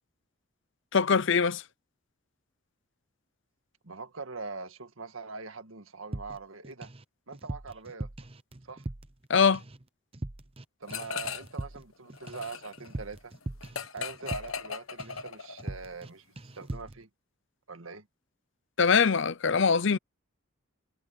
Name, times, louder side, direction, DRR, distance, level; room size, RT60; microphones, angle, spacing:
voice 1, 0.9-1.6 9.3-9.6 18.8-20.0, left 5 dB, 65° left, 0.7 m, -23 dB
voice 2, 3.8-6.9 7.3-8.1 8.6-8.8 10.8-13.3 13.9-17.1 17.7-18.1, right 4 dB, 80° right, 1.9 m, -42 dB
sound 1, 6.1-7.0 7.3-9.3 9.5-9.8 10.1-10.6 10.9-14.7 15.0-15.3 15.6-16.1 16.4-17.0, right 1 dB, 30° right, 0.9 m, -40 dB
sound 2, 10.9-11.6 11.9-15.7, left 6 dB, 85° left, 1.3 m, -38 dB
head